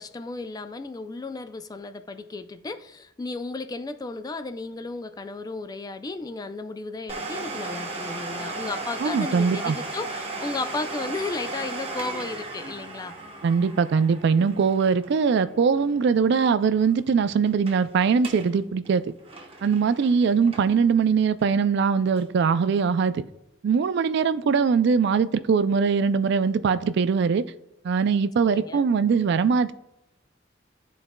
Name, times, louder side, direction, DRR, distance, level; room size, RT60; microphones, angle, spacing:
voice 1, 0.0-13.2 28.4-28.9, left 3 dB, 20° left, 0.3 m, -34 dB
Domestic sounds home sounds, 7.1-16.5 16.8-16.9 17.5-17.8 18.1-18.5 18.8-20.9 21.4-21.5 22.2-22.3, right 3 dB, 30° right, 0.9 m, -36 dB
voice 2, 9.0-9.8 13.4-19.0 19.6-23.2 23.6-27.4 27.8-29.7, right 5 dB, 65° right, 0.3 m, -21 dB
12.0 x 4.1 x 2.2 m
head